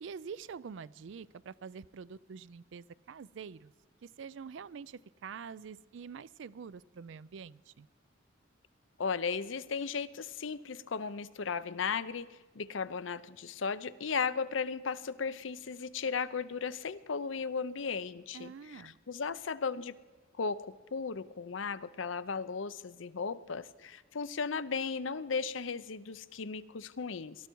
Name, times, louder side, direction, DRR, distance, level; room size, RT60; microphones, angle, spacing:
voice 1, 0.0-3.7 4.0-7.9 18.3-19.0, right 6 dB, 70° right, 20 dB, 0.4 m, -46 dB
voice 2, 9.0-19.9 20.4-27.4, left 5 dB, 80° left, 14 dB, 0.6 m, -36 dB
19.0 x 13.0 x 4.6 m, 1.3 s
head